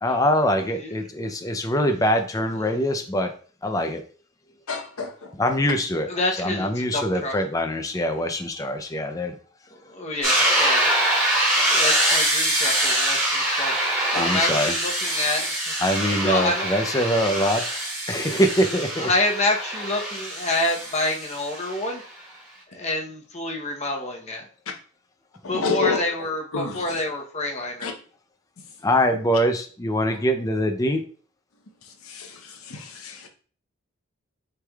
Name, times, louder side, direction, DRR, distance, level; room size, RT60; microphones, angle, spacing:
voice 1, 0.0-3.3 3.6-4.0 5.3-6.1 6.4-9.4 14.1-14.7 15.8-17.6 18.1-19.1 28.8-31.0, equal, 15° left, 6 dB, 0.5 m, -23 dB
voice 2, 4.7-5.3 11.3-11.7 14.1-14.3 25.4-26.0 26.5-27.0 27.8-27.9 32.0-33.3, left 4 dB, 80° left, 4 dB, 0.9 m, -29 dB
voice 3, 6.1-7.3 9.8-10.9 11.7-13.7 14.2-15.5 16.2-16.8 19.0-22.0 22.7-24.4 25.5-27.9, left 2 dB, 30° left, 1 dB, 0.8 m, -27 dB
sound 1, 10.2-21.9, right 1 dB, 15° right, 2.0 m, -24 dB
6.2 x 3.4 x 2.3 m, 0.42 s
head